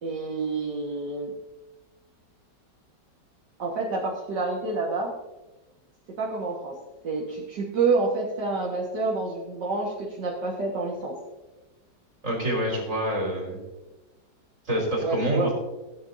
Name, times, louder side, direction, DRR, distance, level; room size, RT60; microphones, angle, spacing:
voice 1, 0.0-1.3 3.6-5.1 6.2-6.7 7.0-11.1 15.0-15.5, right 3 dB, 70° right, -4 dB, 2.3 m, -28 dB
voice 2, 12.2-13.6 14.6-15.5, right 1 dB, 45° right, -3 dB, 3.7 m, -26 dB
18.5 x 10.0 x 2.7 m, 1.1 s
omnidirectional pair, 1.9 m